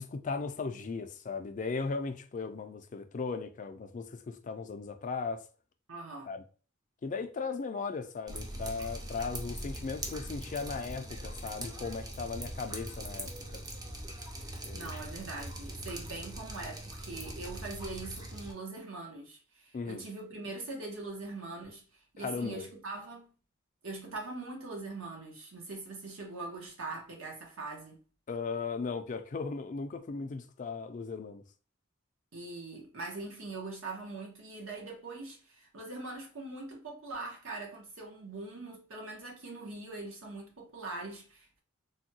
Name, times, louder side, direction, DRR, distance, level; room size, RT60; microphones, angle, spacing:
voice 1, 0.0-5.4 6.3-6.4 7.0-13.6 14.6-14.9 19.7-20.0 22.2-22.7 28.3-31.4, left 4 dB, 40° left, 0.4 m, -37 dB
voice 2, 5.9-6.3 14.5-21.8 22.1-23.3 23.8-28.0 32.3-41.6, right 3 dB, 75° right, 1.0 m, -42 dB
Drip, 8.3-18.5, right 1 dB, 20° right, 0.5 m, -41 dB
3.4 x 2.2 x 2.7 m
head